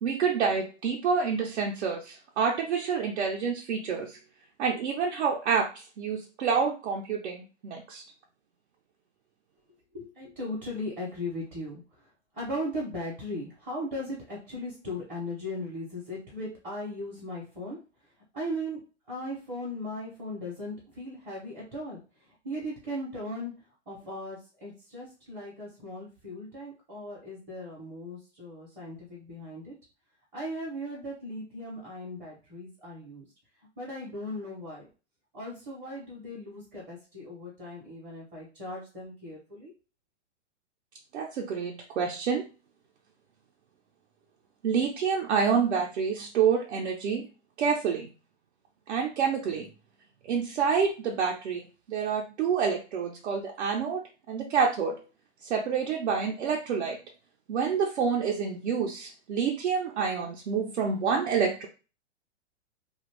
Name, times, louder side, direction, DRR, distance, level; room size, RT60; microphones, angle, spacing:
voice 1, 0.0-4.2 4.6-8.0 41.1-42.4 44.6-47.3 47.6-48.1 48.9-49.7 50.3-54.0 54.3-55.0 55.4-57.0 57.5-61.7, right 6 dB, 70° right, 0 dB, 0.7 m, -28 dB
voice 2, 9.9-11.8 12.3-17.8 18.3-18.8 19.1-22.0 22.4-23.5 23.9-29.7 30.3-33.3 33.8-34.8 35.3-39.7, left 1 dB, 20° right, -6 dB, 0.7 m, -37 dB
2.5 x 2.3 x 3.2 m, 0.34 s
hypercardioid pair, 160°, 36 cm